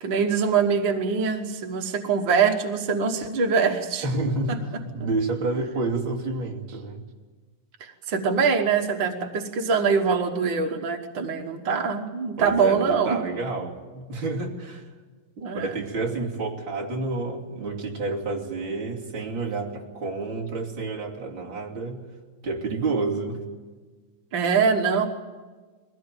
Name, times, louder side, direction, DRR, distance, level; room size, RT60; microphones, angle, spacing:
voice 1, 0.0-4.1 4.5-4.6 7.8-13.2 15.4-15.7 24.3-25.1, right 5 dB, 80° right, 5 dB, 1.0 m, -23 dB
voice 2, 4.0-7.0 12.4-14.8 15.5-22.0 22.4-23.4, right 3 dB, 35° right, -2 dB, 3.1 m, -29 dB
22.0 x 17.0 x 9.1 m, 1.4 s
omnidirectional pair, 4.2 m